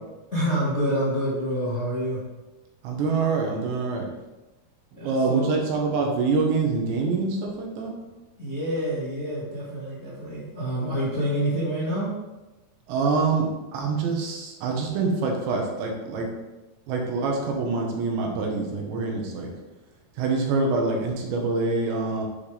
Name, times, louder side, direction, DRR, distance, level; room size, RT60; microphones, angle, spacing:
voice 1, 0.3-2.2 4.9-5.5 8.4-12.1, equal, 35° left, -8 dB, 1.2 m, -27 dB
voice 2, 2.8-4.1 4.9-7.9 12.9-13.5 13.7-16.3 16.9-19.5 20.2-22.2, right 4 dB, 75° right, 0 dB, 3.6 m, -25 dB
9.9 x 7.0 x 3.5 m, 1.1 s
omnidirectional pair, 5.2 m